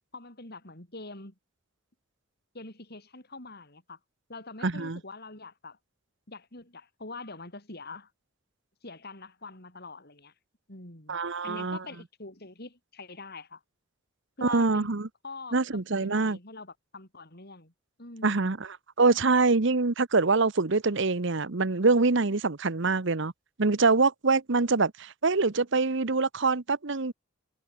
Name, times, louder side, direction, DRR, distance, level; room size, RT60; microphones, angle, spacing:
voice 1, 0.1-1.4 2.5-4.0 4.3-5.8 6.3-8.1 8.8-10.3 10.7-13.6 14.4-14.9 15.2-17.7 18.0-18.5, left 3 dB, 50° left, 5.4 m, -44 dB
voice 2, 4.6-5.0 11.1-11.8 14.4-15.1 15.5-16.4 18.2-23.3 23.6-27.1, right 3 dB, 60° right, 1.0 m, -25 dB
head